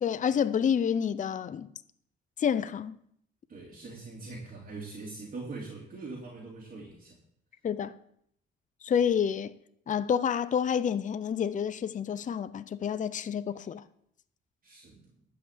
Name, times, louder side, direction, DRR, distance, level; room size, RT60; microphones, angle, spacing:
voice 1, 0.0-1.7 2.4-3.0 7.6-8.0 8.8-9.6 9.9-13.8, left 8 dB, 40° left, 0.6 m, -28 dB
voice 2, 3.5-7.2 13.6-13.7 14.6-15.1, right 3 dB, 45° right, 3.1 m, -42 dB
12.0 x 5.7 x 8.4 m
cardioid pair, 90°, 20 cm